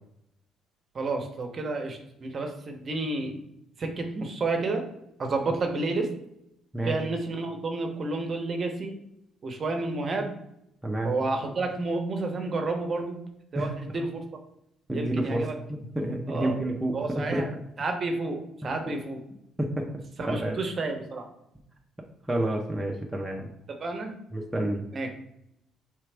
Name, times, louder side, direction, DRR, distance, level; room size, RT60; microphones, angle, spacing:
voice 1, 0.9-3.4 3.8-4.8 5.2-6.1 6.8-8.9 9.4-10.3 11.0-13.2 13.5-14.2 14.9-15.5 16.3-16.5 16.9-17.5 17.8-19.2 20.2-21.2 23.8-24.1 24.9-25.1, right 3 dB, 35° right, 3 dB, 0.8 m, -30 dB
voice 2, 10.8-11.1 13.5-13.7 14.9-17.5 19.6-19.9 20.3-20.6 22.3-23.5 24.3-24.8, right 1 dB, 10° right, -1 dB, 0.6 m, -29 dB
4.7 x 3.3 x 3.3 m, 0.79 s
cardioid pair, 120°, 0 cm